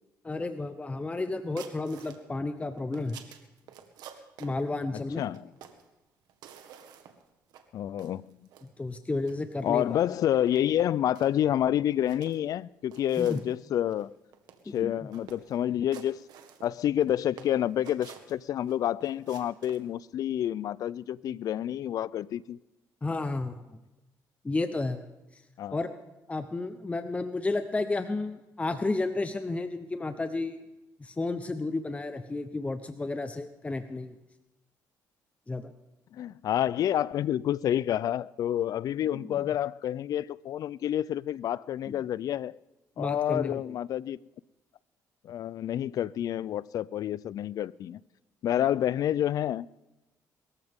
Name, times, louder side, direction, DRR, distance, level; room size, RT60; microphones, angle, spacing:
voice 1, 0.2-3.2 4.4-5.2 8.6-10.0 13.2-13.4 14.7-15.1 23.0-23.8 24.4-25.1 25.3-25.4 25.7-25.9 26.3-30.6 31.0-34.1 35.5-35.7 39.2-39.4 41.9-42.0 43.0-43.8, left 2 dB, 20° left, 0.9 m, -32 dB
sound 1, 1.6-2.2 2.6-4.6 5.2-5.9 6.3-7.2 7.5-7.6 8.0-8.7 9.2-9.3 9.7-10.0 10.5-11.3 11.9-12.5 12.9-13.5 13.9-14.0 14.3-14.8 15.1-15.6 15.9-17.1 17.4-18.7 19.0-19.8, right 9 dB, 80° right, 1.7 m, -49 dB
voice 2, 5.2-5.5 7.7-8.3 9.6-14.1 14.7-16.2 16.6-22.6 25.6-25.8 36.1-42.5 43.0-44.2 45.2-48.0 48.4-49.7, left 11 dB, 65° left, 0.4 m, -28 dB
23.0 x 14.0 x 3.7 m
cardioid pair, 85°, 7 cm